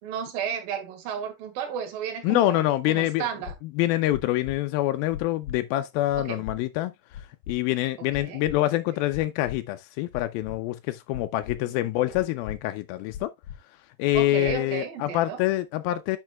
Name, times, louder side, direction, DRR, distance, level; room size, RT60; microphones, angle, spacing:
voice 1, 0.0-3.5 6.2-6.4 8.2-8.4 11.6-12.1 14.1-15.4, right 8 dB, 65° right, 3.2 m, -33 dB
voice 2, 2.2-3.3 3.8-6.9 7.5-13.3 14.0-16.2, left 15 dB, 90° left, 2.1 m, -26 dB
sound 1, 3.4-3.6 4.1-4.6 5.1-5.6 6.1-6.6 7.1-7.6 8.1-8.6 9.1-9.6 10.1-10.6 11.1-11.6 12.1-12.6 13.1-13.6 14.1-14.6, left 9 dB, 65° left, 2.1 m, -38 dB
10.5 x 5.9 x 2.3 m
omnidirectional pair, 4.9 m